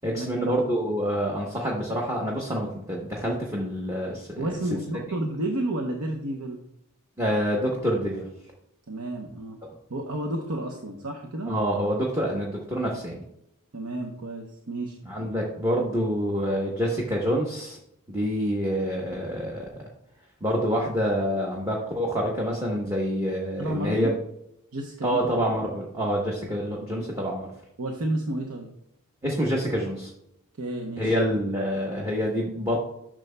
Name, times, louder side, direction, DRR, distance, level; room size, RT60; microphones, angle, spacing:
voice 1, 0.0-4.6 7.2-8.3 11.5-13.2 15.1-17.8 18.1-19.8 20.4-24.1 25.0-27.5 29.2-30.1 31.0-32.8, equal, 15° right, -2 dB, 1.0 m, -27 dB
voice 2, 4.4-6.6 8.9-9.6 9.9-11.5 13.7-15.0 23.6-24.1 24.7-25.2 27.8-28.7 30.6-31.1, right 1 dB, 90° right, 1 dB, 0.8 m, -31 dB
10.5 x 6.2 x 2.2 m, 0.78 s
head